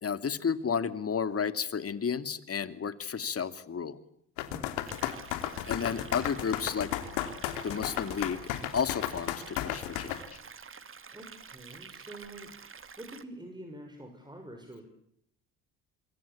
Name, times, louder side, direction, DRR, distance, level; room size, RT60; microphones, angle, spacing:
voice 1, 0.0-4.0 5.7-6.9 7.6-8.4 8.7-10.4, left 6 dB, 40° left, 12 dB, 2.4 m, -32 dB
sound 1, 4.4-10.2, left 13 dB, 85° left, 3.0 m, -34 dB
voice 2, 4.5-4.8 11.1-14.8, right 1 dB, 10° right, 4 dB, 6.4 m, -47 dB
sound 2, 4.8-13.2, right 6 dB, 35° right, 2.4 m, -48 dB
26.5 x 23.0 x 8.6 m, 0.73 s
supercardioid pair, 65°, 37 cm